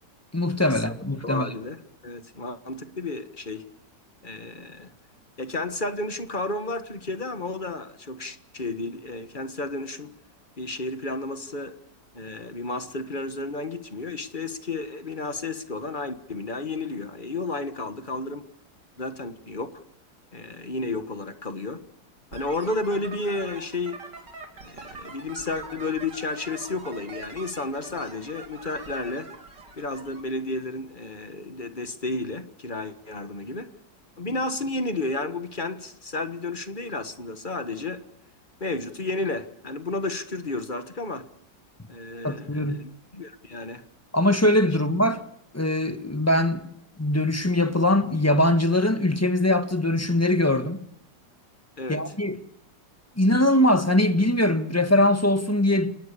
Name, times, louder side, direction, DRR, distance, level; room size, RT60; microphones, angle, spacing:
voice 1, 0.3-1.5 42.2-42.8 44.1-45.2 45.5-46.6 47.0-50.8 51.9-52.4 53.2-55.9, left 1 dB, 10° left, 1.3 m, -22 dB
voice 2, 1.2-3.7 4.2-4.9 5.4-10.1 10.6-11.8 12.1-18.4 19.0-19.8 20.3-21.8 22.3-24.1 24.6-29.3 29.8-33.8 34.2-38.1 38.6-41.3 41.9-43.9 51.8-52.1, left 2 dB, 30° left, 1.5 m, -32 dB
sound 1, 22.3-30.2, right 3 dB, 75° right, 3.7 m, -43 dB
29.5 x 19.0 x 6.9 m
omnidirectional pair, 1.9 m